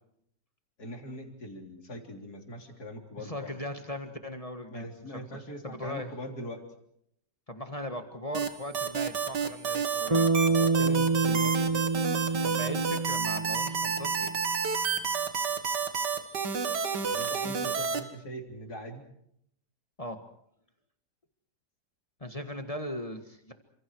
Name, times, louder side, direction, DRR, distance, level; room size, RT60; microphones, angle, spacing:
voice 1, 0.8-3.6 4.7-6.6 10.5-11.8 17.0-19.0, equal, 65° left, 3 dB, 4.2 m, -42 dB
voice 2, 3.2-5.2 5.6-6.1 7.5-10.3 12.4-14.3 20.0-20.2 22.2-23.5, left 1 dB, 20° left, 5 dB, 1.8 m, -39 dB
sound 1, 8.3-18.0, right 5 dB, 80° right, 2.4 m, -30 dB
Bass guitar, 10.1-14.5, right 3 dB, 20° right, 1.1 m, -27 dB
29.5 x 26.5 x 4.8 m, 0.73 s
omnidirectional pair, 1.8 m